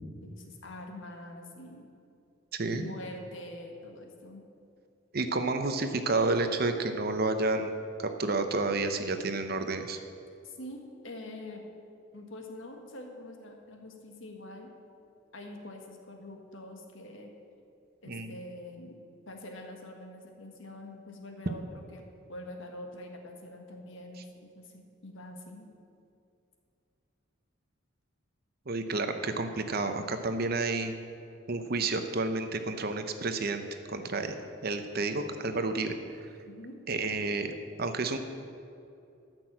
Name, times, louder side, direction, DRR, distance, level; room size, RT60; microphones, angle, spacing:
voice 1, 0.2-1.9 2.7-4.4 10.4-11.7 12.1-14.7 15.3-17.3 18.0-19.0 19.3-25.7 36.5-36.8, left 1 dB, 65° left, 2 dB, 1.6 m, -45 dB
voice 2, 2.5-2.8 5.1-7.7 8.0-10.0 18.1-18.3 28.7-30.9 31.5-33.6 33.9-34.4 34.6-36.0 36.9-38.2, right 3 dB, 45° right, 8 dB, 0.8 m, -30 dB
13.0 x 6.2 x 7.5 m, 2.5 s
head